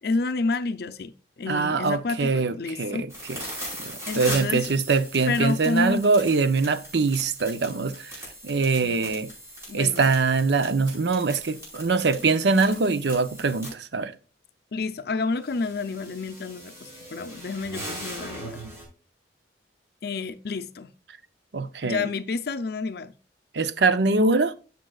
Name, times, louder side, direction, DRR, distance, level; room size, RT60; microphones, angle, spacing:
voice 1, 0.0-3.1 4.1-4.7 5.3-6.0 8.6-9.1 9.7-10.1 14.7-18.7 20.0-20.9 21.8-23.1, left 3 dB, 60° left, 0.5 m, -29 dB
voice 2, 1.5-3.4 3.8-9.3 9.7-14.1 21.5-22.1 23.5-24.5, right 4 dB, 70° right, 0.6 m, -23 dB
sound 1, 3.1-13.7 15.2-18.8, equal, 15° right, 4.6 m, -39 dB
14.0 x 5.4 x 2.4 m
head